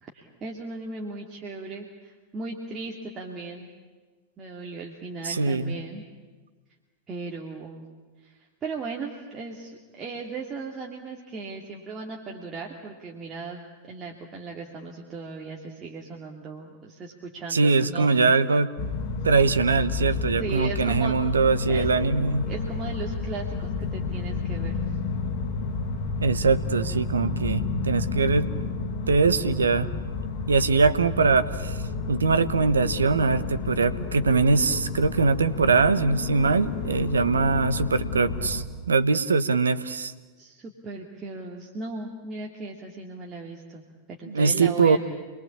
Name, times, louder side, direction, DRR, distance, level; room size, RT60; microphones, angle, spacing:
voice 1, 0.0-3.7 4.4-6.0 7.1-7.9 8.2-13.6 13.9-18.3 20.4-21.2 21.7-21.9 22.5-23.5 23.8-24.8 40.4-43.8 44.1-45.0, right 4 dB, 25° right, -1 dB, 2.7 m, -37 dB
voice 2, 5.2-5.8 17.5-18.7 19.2-22.5 26.2-28.5 29.1-29.9 30.5-31.8 32.1-40.1 44.3-45.0, right 4 dB, 70° right, 14 dB, 1.1 m, -22 dB
sound 1, 18.8-38.7, left 4 dB, 45° left, 2.7 m, -31 dB
28.5 x 22.0 x 8.7 m, 1.4 s
figure-of-eight pair, 90°, 0 cm